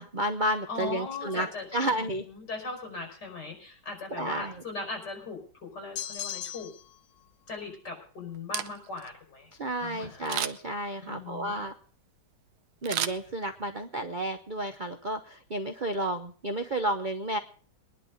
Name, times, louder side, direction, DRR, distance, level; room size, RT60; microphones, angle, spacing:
voice 1, 0.0-2.2 4.1-4.6 9.6-11.7 12.8-17.4, right 1 dB, 60° right, 6 dB, 0.5 m, -31 dB
voice 2, 0.7-6.7 7.5-9.5 9.8-10.4 11.0-11.7, left 3 dB, 50° left, 3 dB, 5.6 m, -39 dB
sound 1, 6.0-7.0, left 11 dB, 80° left, 1.9 m, -37 dB
Camera, 8.3-9.1 10.2-10.8 12.8-13.8 14.2-14.3, right 10 dB, 75° right, 1.6 m, -33 dB
22.0 x 11.0 x 3.9 m, 0.43 s
omnidirectional pair, 2.3 m